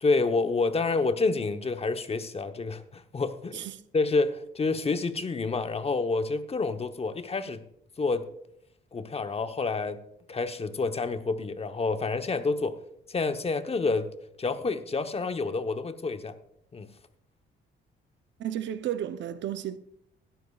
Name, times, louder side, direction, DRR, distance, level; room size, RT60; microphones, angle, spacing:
voice 1, 0.0-3.7 3.9-7.6 8.0-8.3 8.9-10.0 10.3-12.8 13.1-14.1 14.4-16.3 16.7-16.9, left 3 dB, 30° left, 0.9 m, -28 dB
voice 2, 18.4-19.8, right 11 dB, 65° right, 0.7 m, -33 dB
16.0 x 12.5 x 2.4 m
cardioid pair, 90°, 20 cm